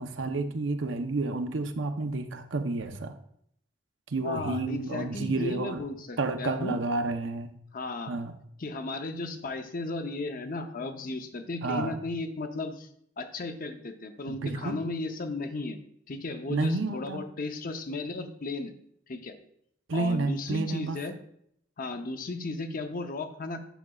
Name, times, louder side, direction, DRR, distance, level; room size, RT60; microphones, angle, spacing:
voice 1, 0.0-3.1 4.1-5.8 6.2-7.5 8.1-8.3 11.6-11.9 14.3-14.8 16.5-17.2 19.9-21.0, right 3 dB, 80° right, 8 dB, 0.7 m, -30 dB
voice 2, 4.2-6.8 7.7-8.2 8.6-12.9 13.2-15.8 16.1-18.7 19.1-19.3 19.9-21.2 21.8-23.6, left 3 dB, 50° left, 7 dB, 0.7 m, -35 dB
9.0 x 6.1 x 2.3 m, 0.70 s
head